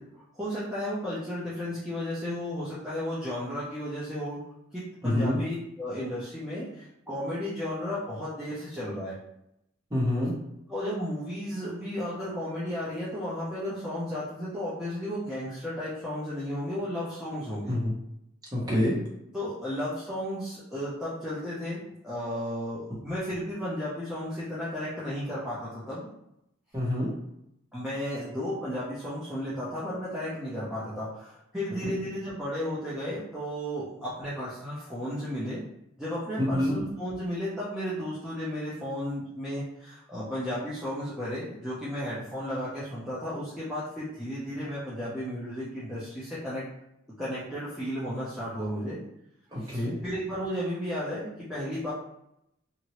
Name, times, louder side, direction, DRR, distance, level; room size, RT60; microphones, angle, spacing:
voice 1, 0.3-4.4 4.7-9.2 10.7-17.7 19.3-26.1 27.7-35.6 36.0-46.6 47.2-49.0 49.6-51.9, equal, 5° right, -11 dB, 0.6 m, -34 dB
voice 2, 5.0-5.4 9.9-10.3 17.7-17.9 18.5-18.9 26.7-27.1 31.8-31.9 36.4-36.8 49.5-49.9, left 1 dB, 20° right, -6 dB, 1.0 m, -26 dB
2.9 x 2.6 x 3.0 m, 0.81 s
head